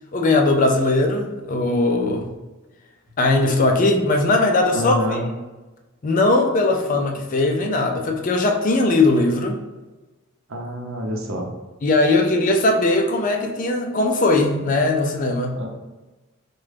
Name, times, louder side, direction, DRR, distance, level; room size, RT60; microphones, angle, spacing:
voice 1, 0.1-2.3 3.2-5.0 6.0-9.6 11.8-15.6, left 2 dB, 40° left, 3 dB, 0.4 m, -19 dB
voice 2, 4.7-5.3 10.5-11.5 15.6-15.7, equal, 70° right, 1 dB, 0.7 m, -27 dB
3.7 x 2.2 x 3.3 m, 1.1 s
head